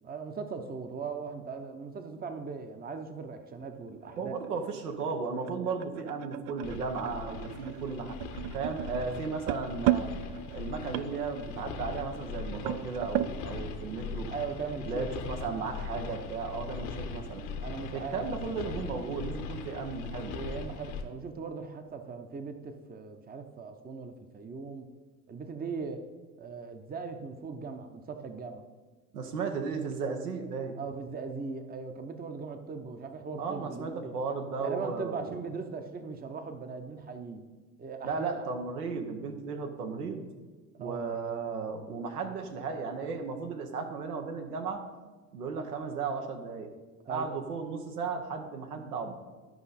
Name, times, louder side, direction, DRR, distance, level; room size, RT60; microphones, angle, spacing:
voice 1, 0.0-4.3 14.3-15.1 17.6-18.3 20.3-24.9 25.3-26.0 26.4-28.6 30.8-34.1 34.6-37.4 37.8-38.4 40.8-41.0 47.1-47.3, right 5 dB, 20° right, 8 dB, 0.8 m, -39 dB
sound 1, 3.6-13.4, right 14 dB, 50° right, 0.4 m, -35 dB
voice 2, 4.2-8.2 8.5-10.1 10.5-14.3 14.9-17.4 17.9-20.3 29.1-30.8 33.4-35.4 38.0-40.3 40.8-44.8 45.3-46.7 47.1-49.1, right 4 dB, 85° right, 4 dB, 1.2 m, -35 dB
sound 2, 6.6-21.0, left 4 dB, 65° left, 1.2 m, -40 dB
12.0 x 5.3 x 4.2 m, 1.3 s
hypercardioid pair, 75°, 45 cm